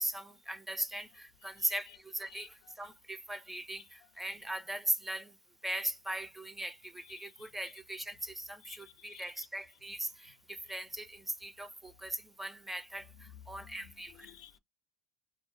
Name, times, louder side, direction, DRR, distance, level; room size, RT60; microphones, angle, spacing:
voice 1, 0.0-5.3 5.6-14.1, right 1 dB, 5° right, 0.4 m, -39 dB
voice 2, 7.2-7.5 8.6-9.3 13.8-13.9 14.2-14.6, left 12 dB, 75° left, 0.4 m, -56 dB
2.3 x 2.2 x 2.3 m
supercardioid pair, 100°, 3 cm